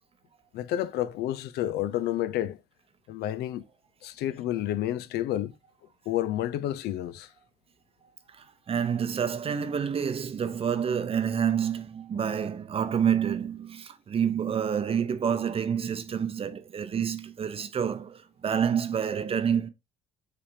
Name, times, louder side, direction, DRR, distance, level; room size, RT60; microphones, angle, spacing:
voice 1, 0.5-2.6 3.1-3.6 4.0-5.5 6.1-7.3, left 12 dB, 75° left, 0.5 m, -30 dB
voice 2, 8.7-19.7, right 8 dB, 35° right, 0.6 m, -28 dB
5.9 x 3.3 x 2.6 m
cardioid pair, 110°, 17 cm